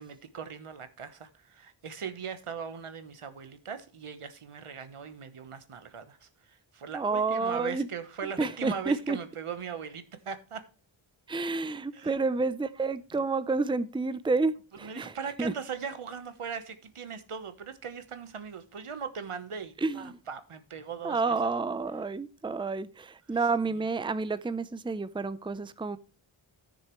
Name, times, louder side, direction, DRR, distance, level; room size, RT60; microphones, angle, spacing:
voice 1, 0.0-10.6 11.9-12.2 14.8-21.3, right 6 dB, 85° right, 1.2 m, -39 dB
voice 2, 6.9-7.9 8.2-9.2 11.3-15.5 19.8-20.2 21.0-26.0, right 4 dB, 10° right, 0.5 m, -30 dB
14.0 x 6.6 x 3.1 m
wide cardioid pair, 75°, 50 cm